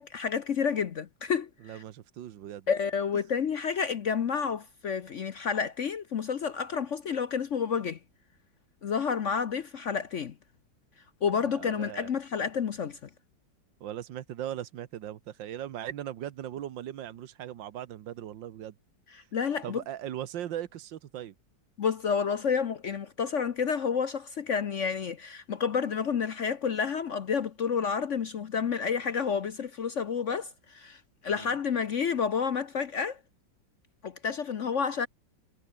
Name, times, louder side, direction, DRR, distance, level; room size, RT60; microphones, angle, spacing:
voice 1, 0.0-1.8 2.7-8.0 8.8-10.3 11.2-13.1 19.1-19.8 21.8-33.2 34.0-35.1, left 6 dB, 50° left, 0.9 m, -30 dB
voice 2, 1.6-2.7 11.4-12.1 13.8-18.7 19.6-21.3 31.3-31.5, right 11 dB, 75° right, 1.7 m, -39 dB
omnidirectional pair, 2.0 m